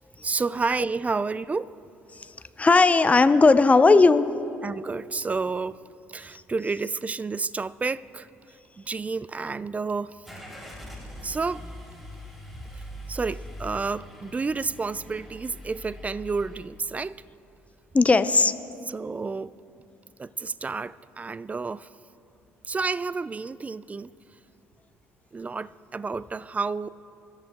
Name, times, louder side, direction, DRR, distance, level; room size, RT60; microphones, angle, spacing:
voice 1, 0.2-1.7 4.6-5.8 6.1-8.3 8.8-10.1 11.2-11.6 13.1-17.2 18.9-19.5 20.2-21.9 22.7-24.1 25.3-26.9, right 4 dB, 20° right, 19 dB, 0.3 m, -30 dB
voice 2, 2.1-4.3 6.3-6.4 17.9-18.5, left 3 dB, 20° left, 12 dB, 0.6 m, -18 dB
Car / Engine starting, 10.2-16.7, equal, ahead, 3.7 m, -42 dB
24.0 x 13.5 x 2.4 m, 2.7 s
figure-of-eight pair, 50°, 7 cm